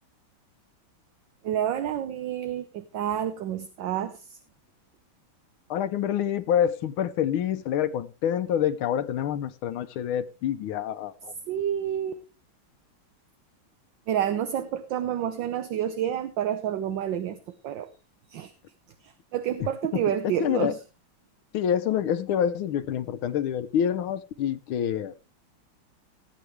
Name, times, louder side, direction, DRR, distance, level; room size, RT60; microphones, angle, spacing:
voice 1, 1.4-4.4 11.5-12.2 14.1-17.4 17.6-17.9 18.3-18.5 19.3-20.8, right 10 dB, 70° right, 1.5 m, -29 dB
voice 2, 5.7-11.3 19.9-20.0 20.4-20.7 21.5-25.1, left 9 dB, 80° left, 1.6 m, -27 dB
17.5 x 8.9 x 3.3 m
omnidirectional pair, 2.3 m